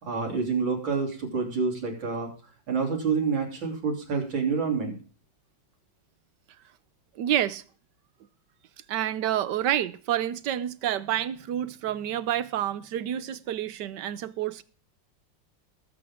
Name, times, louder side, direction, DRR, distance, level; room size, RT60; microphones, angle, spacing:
voice 1, 0.0-2.3 2.7-5.0 9.2-9.4, right 5 dB, 90° right, 4.0 m, -28 dB
voice 2, 7.1-7.6 8.9-14.6, right 11 dB, 70° right, 1.3 m, -28 dB
19.5 x 8.1 x 3.7 m
omnidirectional pair, 2.1 m